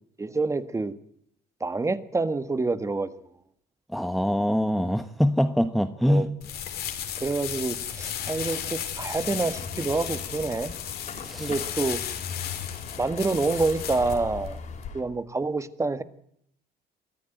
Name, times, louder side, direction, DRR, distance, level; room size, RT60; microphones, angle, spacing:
voice 1, 0.2-0.9 1.6-3.1 6.0-6.3 7.2-10.7 11.4-12.0 13.0-14.6 14.9-16.0, right 3 dB, 15° right, 12 dB, 1.6 m, -27 dB
voice 2, 3.9-6.3 11.2-11.5, equal, ahead, 9 dB, 1.1 m, -24 dB
sound 1, 6.4-14.9, left 9 dB, 65° left, 3.8 m, -34 dB
sound 2, 9.1-15.0, left 4 dB, 45° left, 4.7 m, -42 dB
23.5 x 14.0 x 9.3 m, 0.72 s
cardioid pair, 110°, 17 cm